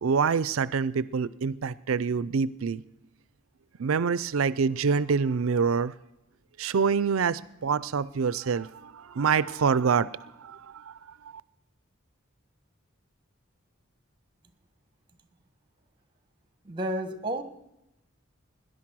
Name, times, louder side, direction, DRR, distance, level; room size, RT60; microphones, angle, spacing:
voice 1, 0.0-2.8 3.8-5.9 6.6-10.1 10.4-10.6, right 5 dB, 80° right, 18 dB, 0.5 m, -26 dB
voice 2, 16.6-17.4, right 1 dB, 25° right, 9 dB, 1.3 m, -31 dB
18.0 x 11.0 x 6.2 m, 0.88 s
head